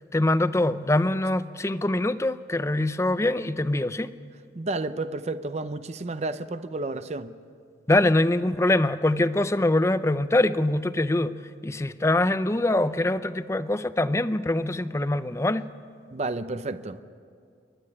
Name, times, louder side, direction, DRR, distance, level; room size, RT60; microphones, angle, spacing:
voice 1, 0.1-4.1 7.9-15.7, left 1 dB, 15° left, 13 dB, 0.5 m, -24 dB
voice 2, 4.5-7.4 16.1-17.0, right 2 dB, 35° right, 12 dB, 0.6 m, -31 dB
28.5 x 12.0 x 9.9 m, 2.3 s
head